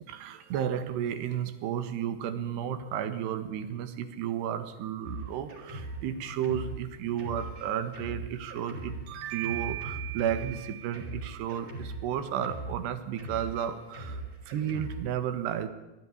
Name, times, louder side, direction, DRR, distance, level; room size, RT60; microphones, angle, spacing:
voice 1, 0.1-14.2 14.5-15.7, right 9 dB, 85° right, 10 dB, 3.6 m, -33 dB
Drum kit, 5.0-15.1, right 2 dB, 60° right, 7.4 m, -41 dB
20.5 x 13.5 x 9.8 m, 1.1 s
omnidirectional pair, 4.7 m